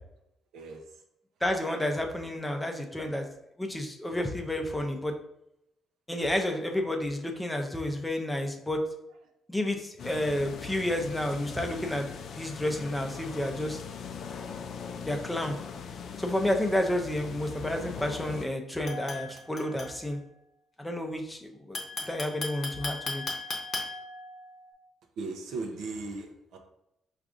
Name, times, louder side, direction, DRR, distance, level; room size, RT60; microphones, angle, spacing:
voice 1, 1.4-3.3 3.6-5.1 6.1-8.8 9.5-12.1 12.4-13.8 15.1-15.6 16.2-20.2 20.8-23.2, left 1 dB, 10° left, 3 dB, 0.5 m, -30 dB
sound 1, 10.0-18.5, left 6 dB, 65° left, 0.3 m, -41 dB
sound 2, 18.8-20.3 21.7-24.7, left 3 dB, 40° left, 0.8 m, -37 dB
voice 2, 25.2-26.6, right 3 dB, 75° right, 4 dB, 0.6 m, -37 dB
4.6 x 2.5 x 2.5 m, 0.80 s
cardioid pair, 90°, 0 cm